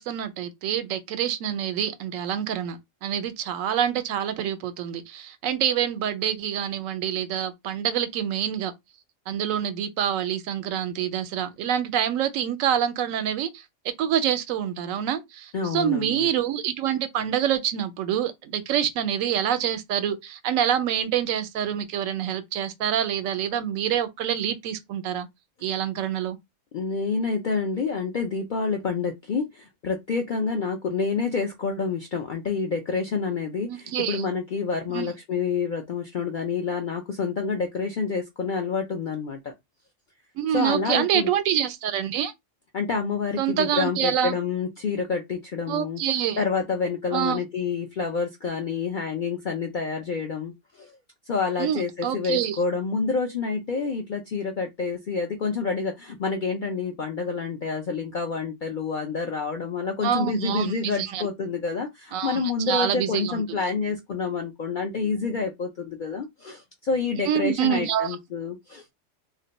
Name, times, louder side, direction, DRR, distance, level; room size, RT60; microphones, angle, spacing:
voice 1, 0.0-8.7 9.3-25.3 25.6-26.4 33.7-34.2 34.9-35.1 40.4-42.3 43.4-44.3 45.7-46.4 47.1-47.4 51.6-52.6 60.0-61.2 62.1-63.6 67.3-68.2, right 9 dB, 85° right, 1.0 m, -26 dB
voice 2, 15.5-16.3 26.7-39.5 40.5-41.3 42.7-46.0 46.4-50.9 51.3-68.8, left 5 dB, 65° left, 0.4 m, -28 dB
2.4 x 2.1 x 3.9 m
omnidirectional pair, 1.3 m